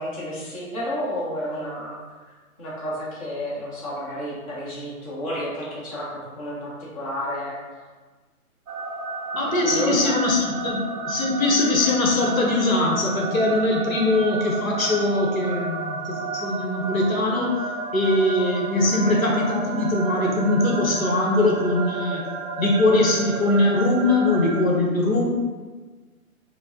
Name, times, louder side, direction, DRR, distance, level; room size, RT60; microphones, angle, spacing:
voice 1, 0.0-2.0 2.6-7.6 9.6-10.1, equal, 25° left, -8 dB, 0.8 m, -31 dB
sound 1, 8.7-24.7, right 4 dB, 80° right, 0.6 m, -32 dB
voice 2, 9.3-17.6 17.9-22.2 22.6-25.3, left 2 dB, 65° left, -1 dB, 0.9 m, -21 dB
4.2 x 2.0 x 2.7 m, 1.4 s
figure-of-eight pair, 135°, 43 cm